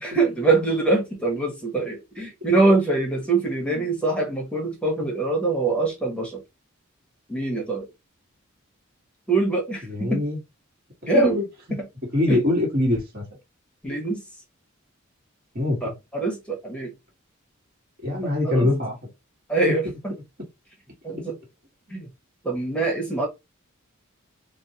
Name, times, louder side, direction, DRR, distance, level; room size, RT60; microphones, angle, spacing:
voice 1, 0.0-6.4 7.3-7.9 9.3-10.2 11.1-11.4 12.3-12.4 13.8-14.2 15.8-16.9 18.5-18.7 19.5-20.1 21.0-21.3 21.9-22.1 22.4-23.3, right 3 dB, 5° left, 1.1 m, -23 dB
voice 2, 9.8-10.4 11.0-11.8 12.1-13.2 15.5-15.9 18.0-19.1, left 1 dB, 45° right, 1.4 m, -24 dB
4.2 x 2.1 x 2.8 m
head